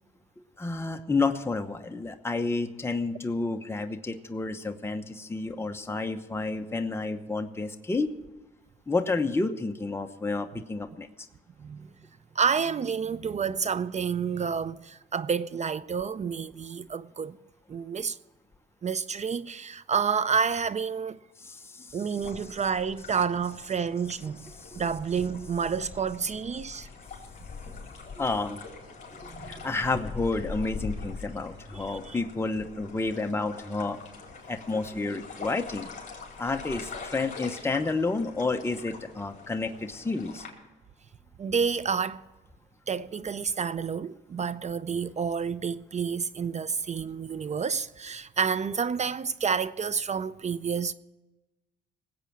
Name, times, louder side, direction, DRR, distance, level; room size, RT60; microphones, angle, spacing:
voice 1, 0.6-8.1 8.9-11.1 21.4-22.0 24.6-24.7 28.1-28.6 29.2-34.0 34.5-35.9 36.4-40.4, left 3 dB, 10° left, 1.0 m, -30 dB
voice 2, 11.6-11.9 12.4-17.4 17.7-18.2 18.8-21.2 21.9-24.5 24.8-26.9 29.4-29.5 31.7-32.2 41.4-42.2 42.9-50.9, right 6 dB, 35° right, 0.5 m, -29 dB
sound 1, 22.2-40.5, left 4 dB, 40° left, 4.4 m, -43 dB
19.0 x 8.3 x 6.1 m
cardioid pair, 90°, 20 cm